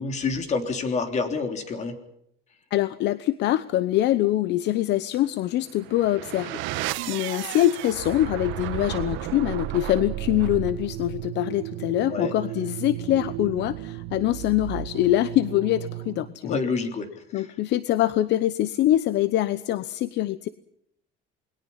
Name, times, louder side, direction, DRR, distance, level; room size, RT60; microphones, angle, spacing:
voice 1, 0.0-2.0 7.1-7.2 12.1-12.3 16.4-17.1 17.3-17.5, left 4 dB, 35° left, 7 dB, 3.5 m, -28 dB
voice 2, 2.7-6.6 7.1-16.6 17.3-20.5, left 14 dB, 65° left, 15 dB, 0.9 m, -24 dB
sound 1, 5.7-16.4, right 15 dB, 80° right, 1.5 m, -34 dB
29.0 x 21.5 x 5.6 m, 0.73 s
cardioid pair, 140°, 20 cm